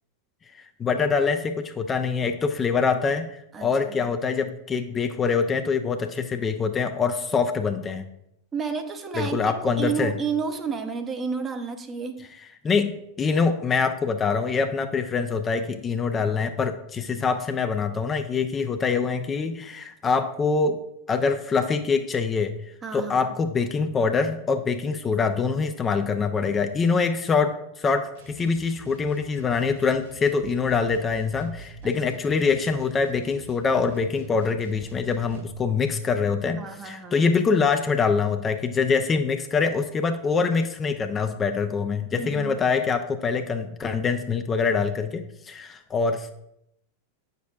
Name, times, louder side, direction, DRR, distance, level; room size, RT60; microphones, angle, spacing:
voice 1, 0.8-8.0 9.2-10.1 12.6-20.8 21.1-22.5 22.9-46.3, left 5 dB, 20° left, 7 dB, 0.5 m, -24 dB
voice 2, 3.5-4.1 8.5-12.3 22.8-23.3 31.8-31.9 36.6-37.2 42.1-42.5, right 6 dB, 20° right, 7 dB, 0.7 m, -31 dB
sound 1, 28.1-35.6, right 3 dB, 60° right, 1.7 m, -46 dB
8.9 x 6.7 x 2.4 m, 0.78 s
figure-of-eight pair, 90°, 0 cm